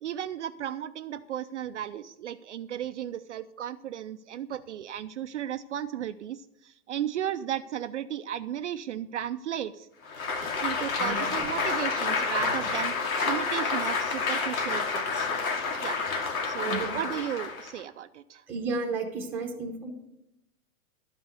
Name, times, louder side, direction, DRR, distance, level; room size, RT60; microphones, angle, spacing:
voice 1, 0.0-9.9 10.6-12.9 13.2-15.3 15.8-16.0 16.4-18.4, right 10 dB, 55° right, 9 dB, 0.5 m, -35 dB
Applause, 10.0-17.8, left 4 dB, 75° left, 2.5 m, -29 dB
voice 2, 11.0-11.3 16.7-17.0 18.5-19.9, right 3 dB, 5° right, -2 dB, 0.9 m, -33 dB
12.5 x 5.5 x 7.9 m, 0.87 s
hypercardioid pair, 175°, 43 cm